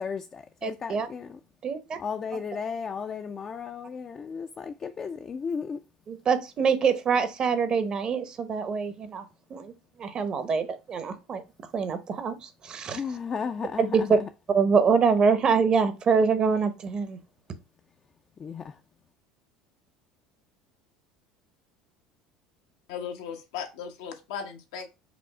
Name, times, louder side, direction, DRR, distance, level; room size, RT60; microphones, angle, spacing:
voice 1, 0.0-1.4 2.0-5.8 12.9-14.3 18.4-18.8, left 6 dB, 30° left, 0.4 m, -34 dB
voice 2, 0.6-1.1 1.6-2.0 6.1-9.2 9.5-9.7 10.0-11.4 11.7-13.0 13.8-14.0 14.5-17.2, right 5 dB, 40° right, 0.8 m, -25 dB
voice 3, 22.9-24.9, left 7 dB, 85° left, 0.9 m, -37 dB
5.0 x 2.0 x 4.7 m
supercardioid pair, 95°, 2 cm